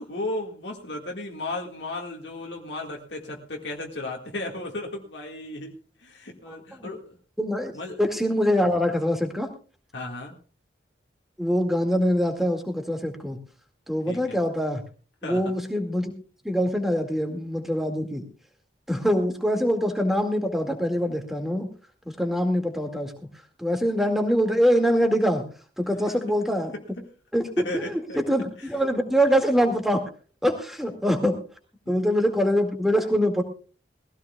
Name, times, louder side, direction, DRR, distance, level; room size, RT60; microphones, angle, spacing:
voice 1, 0.0-7.2 7.7-8.0 9.9-10.3 14.1-14.4 15.2-15.5 27.0-27.1 27.6-28.2 28.6-28.7 31.9-32.0, left 2 dB, 70° left, 1 dB, 1.9 m, -35 dB
voice 2, 6.5-6.9 7.4-7.7 8.0-9.5 11.4-13.4 13.9-14.8 15.2-16.1 16.4-18.2 18.9-21.7 22.1-23.1 23.6-25.4 25.8-26.7 27.3-30.0 30.4-31.4 31.9-33.4, equal, ahead, 4 dB, 2.1 m, -24 dB
21.0 x 16.0 x 2.3 m, 0.38 s
head